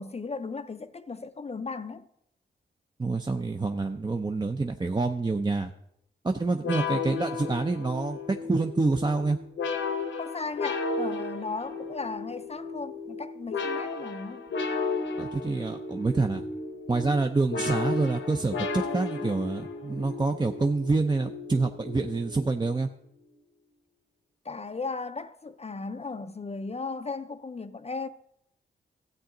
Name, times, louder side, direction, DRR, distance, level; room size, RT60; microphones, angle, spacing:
voice 1, 0.0-2.1 10.2-14.4 24.4-28.1, left 4 dB, 30° left, 0.6 m, -36 dB
voice 2, 3.0-5.7 6.2-9.4 15.2-16.4 16.9-22.9, right 3 dB, 20° right, 0.6 m, -27 dB
sound 1, 6.6-22.8, left 3 dB, 80° left, 1.1 m, -34 dB
13.5 x 8.1 x 3.9 m
cardioid pair, 55°, 20 cm